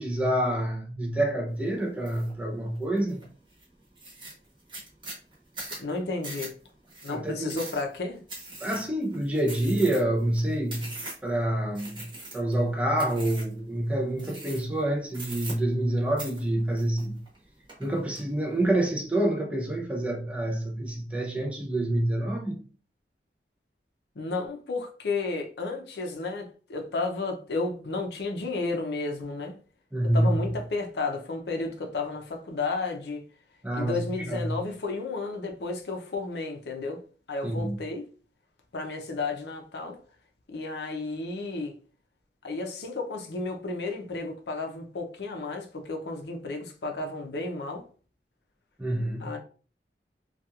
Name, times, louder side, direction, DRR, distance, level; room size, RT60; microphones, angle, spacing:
voice 1, 0.0-3.2 7.1-7.6 8.6-11.0 11.2-17.2 17.8-22.6 29.9-30.3 33.6-34.6 37.4-37.8 48.8-49.3, right 1 dB, 5° right, 0.4 m, -27 dB
sound 1, 2.0-2.3 2.7-3.2 3.6-3.7 4.0-11.3 11.7-12.6 13.0-13.6 14.2-14.8 15.1-15.9 16.2-17.4 17.7-18.2, right 2 dB, 30° right, 0.9 m, -41 dB
voice 2, 5.8-6.5 7.0-8.2 24.2-29.6 30.1-33.3 33.7-37.0 37.3-38.1 38.7-40.0 40.5-41.8 42.4-47.8 49.2-49.4, left 3 dB, 75° left, 0.5 m, -32 dB
2.8 x 2.3 x 2.3 m
head